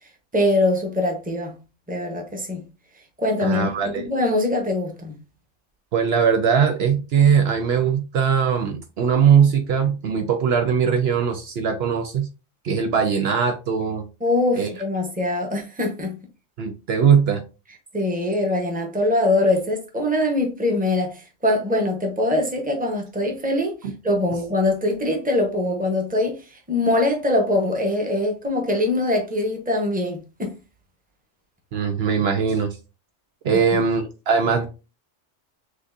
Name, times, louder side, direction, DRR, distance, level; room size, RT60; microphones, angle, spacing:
voice 1, 0.3-1.6 1.9-2.7 3.2-5.2 14.2-16.2 17.9-30.5 33.5-33.8, left 1 dB, 10° right, 0.8 m, -23 dB
voice 2, 3.4-4.1 5.9-12.3 12.6-14.0 14.6-14.7 16.6-17.4 31.7-32.8 33.4-34.7, right 7 dB, 65° right, 0.8 m, -20 dB
6.3 x 2.6 x 2.5 m
omnidirectional pair, 1.2 m